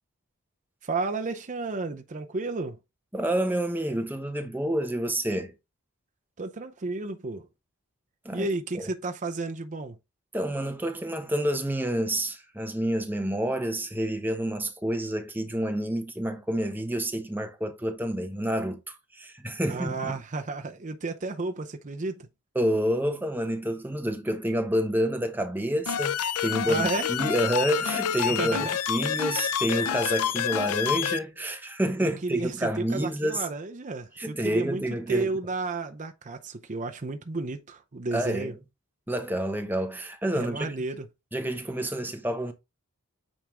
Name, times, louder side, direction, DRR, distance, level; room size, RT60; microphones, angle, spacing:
voice 1, 0.8-2.8 6.4-7.5 8.3-10.0 19.7-22.3 26.6-27.1 28.4-28.8 32.0-38.5 40.3-41.1, right 3 dB, 35° right, 0.6 m, -32 dB
voice 2, 3.1-5.5 8.2-8.5 8.7-8.9 10.3-20.2 22.5-33.5 34.2-35.3 38.1-38.5 39.1-40.7 41.3-42.5, right 1 dB, 10° right, 0.9 m, -28 dB
sound 1, 25.9-31.2, left 9 dB, 85° left, 0.5 m, -28 dB
8.9 x 3.5 x 3.6 m
head